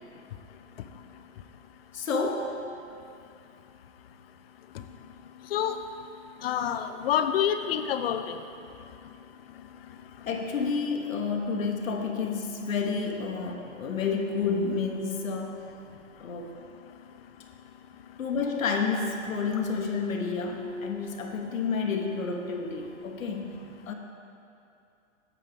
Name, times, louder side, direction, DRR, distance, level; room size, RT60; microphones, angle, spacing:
voice 1, 1.9-2.5 10.3-15.6 16.2-16.5 18.2-23.5 23.9-24.0, left 4 dB, 75° left, 3 dB, 1.2 m, -30 dB
voice 2, 6.4-8.3, left 9 dB, 45° left, 9 dB, 0.5 m, -27 dB
9.7 x 7.5 x 3.5 m, 2.6 s
hypercardioid pair, 135°, 40 cm